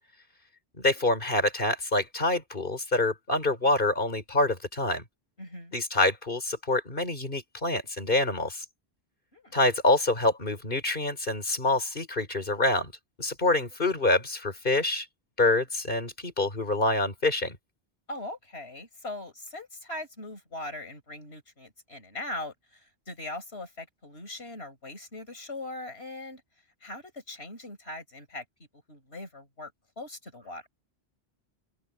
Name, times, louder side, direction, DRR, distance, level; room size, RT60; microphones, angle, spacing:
voice 1, 0.8-5.0 5.7-8.6 9.5-12.9 13.2-15.1 15.4-17.6, left 2 dB, 55° left, 4.7 m, -26 dB
voice 2, 5.4-5.7 9.3-9.6 18.1-26.4 26.8-28.5 28.9-29.7 30.0-30.6, left 2 dB, 75° left, 5.6 m, -40 dB
open air
omnidirectional pair, 1.1 m